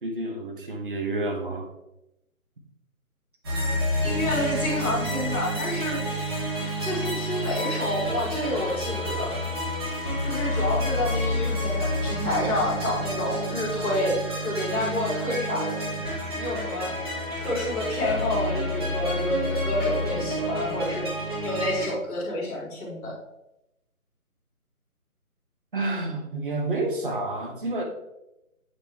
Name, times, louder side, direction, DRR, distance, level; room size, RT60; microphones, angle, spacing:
voice 1, 0.0-1.7 25.7-27.8, right 2 dB, 35° right, 3 dB, 1.2 m, -29 dB
sound 1, 3.4-21.9, equal, 15° right, 1.5 m, -29 dB
voice 2, 4.0-6.3 6.8-9.5 10.2-16.9 17.4-21.1 21.4-23.1, left 1 dB, 5° left, -13 dB, 1.2 m, -29 dB
8.1 x 5.2 x 3.0 m, 0.87 s
figure-of-eight pair, 155°, 44 cm